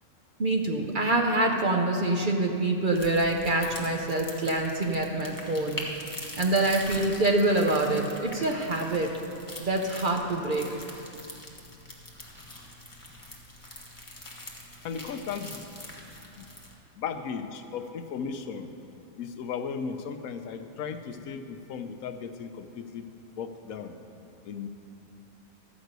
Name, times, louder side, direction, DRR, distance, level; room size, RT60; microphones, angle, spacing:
voice 1, 0.4-5.9 6.4-9.2 9.6-10.7, right 2 dB, 45° right, 1 dB, 0.7 m, -26 dB
sound 1, 2.9-16.7, left 1 dB, 15° left, 1.3 m, -43 dB
voice 2, 14.8-15.7 16.4-16.5 16.9-18.7 19.2-23.1 23.4-24.0 24.4-24.7, left 6 dB, 80° left, 7 dB, 1.1 m, -36 dB
12.5 x 5.3 x 8.0 m, 2.8 s
omnidirectional pair, 1.5 m